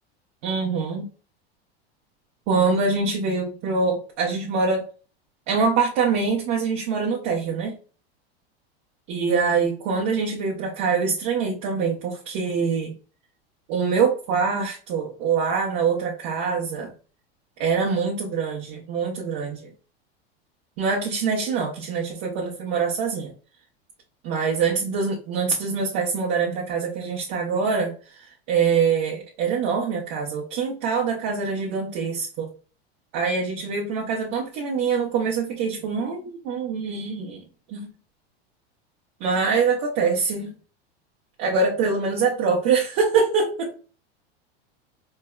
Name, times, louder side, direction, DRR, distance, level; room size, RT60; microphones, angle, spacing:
voice 1, 0.4-1.1 2.5-4.8 5.5-7.7 9.1-12.9 13.7-16.9 17.6-19.7 20.8-23.3 24.2-32.5 33.1-37.4 37.7-37.9 39.2-40.5 41.4-43.8, right 5 dB, 50° right, -2 dB, 1.0 m, -24 dB
4.5 x 2.1 x 2.3 m, 0.37 s
hypercardioid pair, 105°, 31 cm